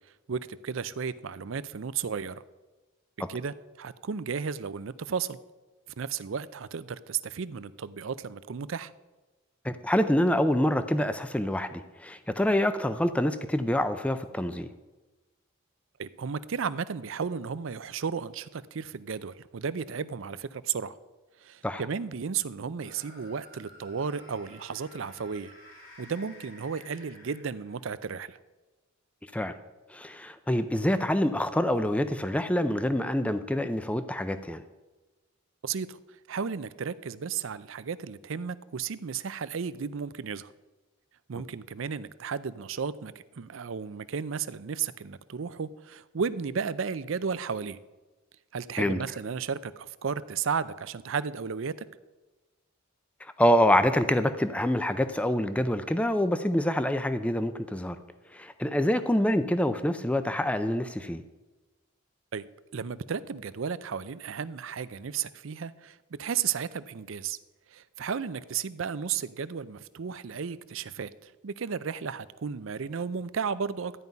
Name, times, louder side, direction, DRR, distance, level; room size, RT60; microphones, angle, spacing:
voice 1, 0.3-2.4 3.3-5.4 6.0-8.9 16.0-21.0 21.4-25.5 26.0-28.4 35.6-36.0 36.3-40.5 41.3-47.8 48.5-51.9 62.3-62.4 62.7-67.4 67.7-73.9, right 6 dB, 65° right, 16 dB, 0.5 m, -34 dB
voice 2, 9.6-14.7 21.6-21.8 29.3-29.5 29.9-34.6 48.8-49.0 53.2-58.0 58.3-61.2, left 1 dB, 5° left, 10 dB, 0.5 m, -26 dB
sound 1, 22.8-28.0, left 1 dB, 65° left, 4.4 m, -52 dB
13.0 x 5.5 x 9.3 m, 1.2 s
head